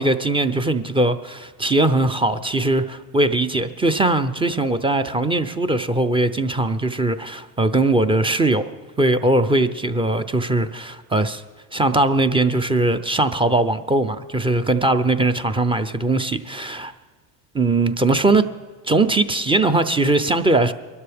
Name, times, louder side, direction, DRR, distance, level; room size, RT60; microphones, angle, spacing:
voice 1, 0.0-8.6 9.0-11.4 11.7-16.9 17.5-18.4 18.9-20.7, right 2 dB, 10° right, 10 dB, 0.4 m, -20 dB
22.5 x 12.5 x 3.5 m, 1.4 s
supercardioid pair, 100°, 49 cm